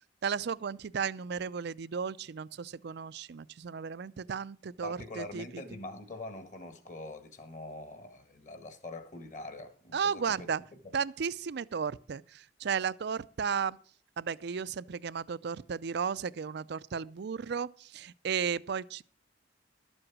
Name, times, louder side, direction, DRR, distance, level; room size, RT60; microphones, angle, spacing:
voice 1, 0.2-5.6 9.9-10.6 10.9-13.8 14.2-19.0, right 6 dB, 60° right, 0.4 m, -34 dB
voice 2, 4.8-10.5 10.8-11.0, left 2 dB, 40° left, 1.7 m, -44 dB
12.5 x 7.8 x 6.1 m
head